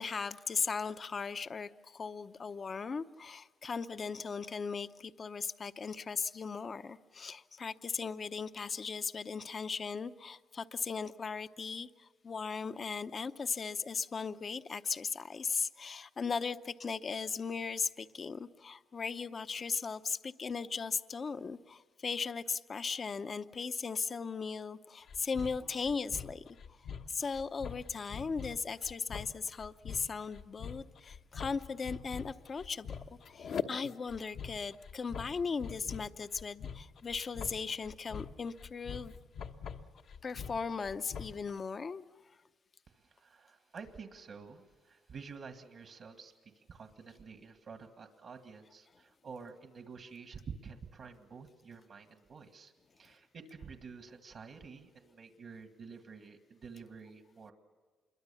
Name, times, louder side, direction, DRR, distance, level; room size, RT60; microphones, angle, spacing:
voice 1, 0.0-26.4 27.1-32.9 33.3-39.1 40.2-42.0, left 5 dB, 40° left, 11 dB, 0.7 m, -37 dB
sound 1, 25.1-41.5, left 6 dB, 65° left, 1.1 m, -44 dB
voice 2, 42.9-57.5, right 5 dB, 60° right, 6 dB, 1.8 m, -50 dB
27.0 x 22.5 x 7.0 m, 1.3 s
cardioid pair, 90°, 0 cm